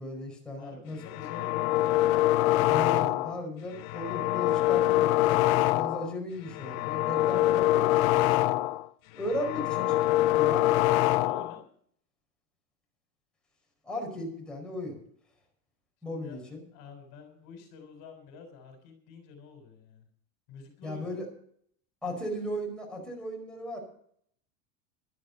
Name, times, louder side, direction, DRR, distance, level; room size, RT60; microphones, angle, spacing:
voice 1, 0.0-1.3 2.7-5.4 5.7-8.3 9.2-10.0 10.2-10.7 13.8-15.0 16.0-16.6 20.8-21.2 22.0-23.8, left 1 dB, ahead, -2 dB, 5.1 m, -36 dB
voice 2, 0.6-2.2 9.6-10.0 11.2-11.7 16.1-16.4 16.7-20.1 20.5-21.1, left 4 dB, 50° left, 6 dB, 3.7 m, -49 dB
sound 1, 1.0-3.4 3.8-6.1 6.5-8.9 9.2-11.6, left 16 dB, 80° left, 0.8 m, -25 dB
14.0 x 12.0 x 5.5 m, 0.65 s
supercardioid pair, 155°, 41 cm